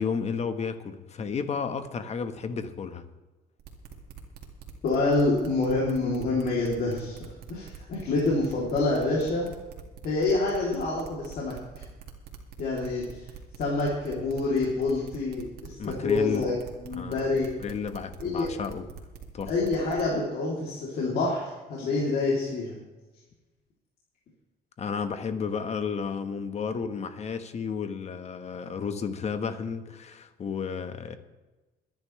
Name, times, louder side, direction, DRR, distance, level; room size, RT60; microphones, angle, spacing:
voice 1, 0.0-3.0 15.8-16.5 17.0-18.9 19.3-19.5 24.8-31.2, left 6 dB, 40° left, 9 dB, 1.4 m, -32 dB
sound 1, 3.6-20.0, right 8 dB, 70° right, 2.3 m, -44 dB
voice 2, 4.8-7.1 7.5-9.5 10.0-11.5 12.6-13.0 13.6-16.5 16.8-17.5 18.2-18.5 19.5-22.8, left 3 dB, 65° left, -5 dB, 3.3 m, -27 dB
22.5 x 10.5 x 3.3 m, 1.1 s
cardioid pair, 110°, 17 cm